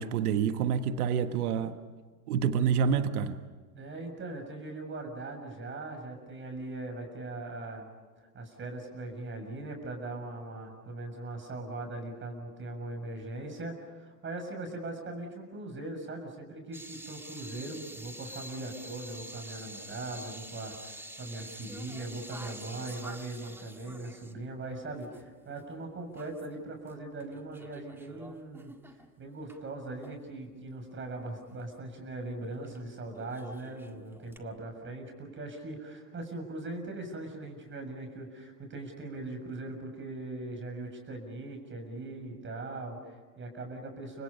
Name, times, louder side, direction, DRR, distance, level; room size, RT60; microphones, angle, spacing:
voice 1, 0.0-1.7 2.3-3.4, right 7 dB, 75° right, 9 dB, 1.6 m, -27 dB
voice 2, 3.7-7.9 8.3-44.2, right 2 dB, 25° right, 4 dB, 7.0 m, -40 dB
sound 1, 16.7-25.3 25.6-25.7 26.1-26.9 27.2-29.6 30.0-30.2 32.6-32.8 33.1-34.4, right 1 dB, 5° right, 1.8 m, -47 dB
29.5 x 26.0 x 5.6 m, 1.5 s
hypercardioid pair, 105°, 45 cm